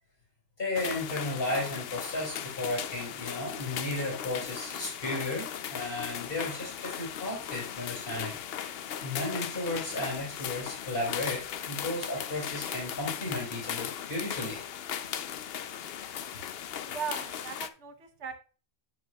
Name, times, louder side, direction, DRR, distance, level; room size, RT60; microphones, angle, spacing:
voice 1, 0.6-8.4 9.0-14.6, left 2 dB, 45° left, -3 dB, 4.8 m, -34 dB
sound 1, 0.7-17.7, left 9 dB, 60° left, 0.7 m, -37 dB
voice 2, 16.8-18.3, right 6 dB, 65° right, 7 dB, 1.3 m, -38 dB
9.2 x 7.6 x 2.3 m, 0.36 s
omnidirectional pair, 1.3 m